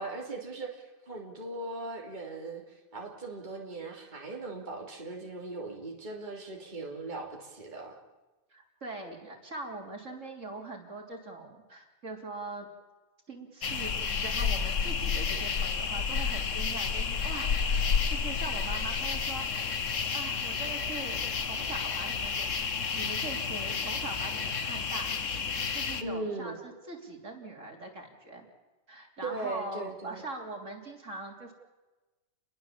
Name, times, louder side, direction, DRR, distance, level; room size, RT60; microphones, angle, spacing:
voice 1, 0.0-7.9 26.0-26.6 29.2-30.2, right 2 dB, 35° right, -1 dB, 3.1 m, -39 dB
voice 2, 8.5-12.7 13.3-13.9 14.2-19.5 20.1-22.5 22.9-28.5 28.9-31.5, right 2 dB, 60° right, 2 dB, 3.7 m, -42 dB
sound 1, 13.6-26.0, left 6 dB, 65° left, 1.6 m, -31 dB
29.5 x 22.0 x 7.4 m, 1.2 s
omnidirectional pair, 1.4 m